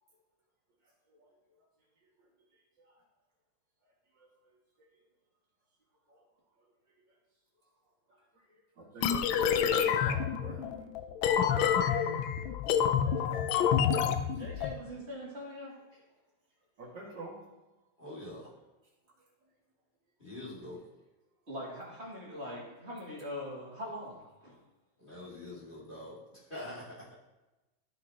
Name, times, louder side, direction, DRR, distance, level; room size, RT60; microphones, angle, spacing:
voice 1, 8.8-10.7 12.2-12.3 16.8-17.3, right 1 dB, 65° right, -4 dB, 2.7 m, -44 dB
sound 1, 9.0-14.7, left 8 dB, 85° left, 1.4 m, -28 dB
voice 2, 14.2-16.0 21.5-24.2 24.4-24.6, left 1 dB, 35° right, -6 dB, 2.9 m, -42 dB
voice 3, 18.0-18.5 20.2-20.8 25.0-27.2, left 1 dB, 25° left, -7 dB, 2.3 m, -45 dB
13.0 x 5.9 x 2.9 m, 1.1 s
omnidirectional pair, 2.1 m